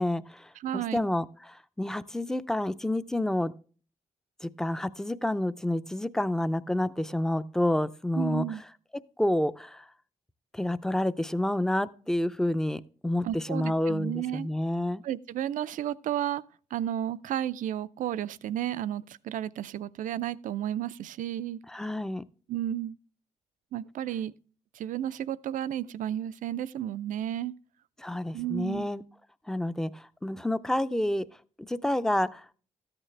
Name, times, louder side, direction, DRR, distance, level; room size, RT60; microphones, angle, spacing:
voice 1, 0.0-3.5 4.4-8.5 9.2-9.9 10.5-15.0 21.7-22.2 28.0-29.0 29.5-31.3 31.7-32.4, left 1 dB, 5° left, 0.4 m, -29 dB
voice 2, 0.6-1.0 8.2-8.6 13.2-14.5 15.0-16.4 16.7-21.6 22.5-23.0 23.7-24.3 24.7-27.5 28.3-28.9, right 11 dB, 75° right, 0.4 m, -32 dB
13.5 x 8.9 x 3.2 m
cardioid pair, 115°, 13 cm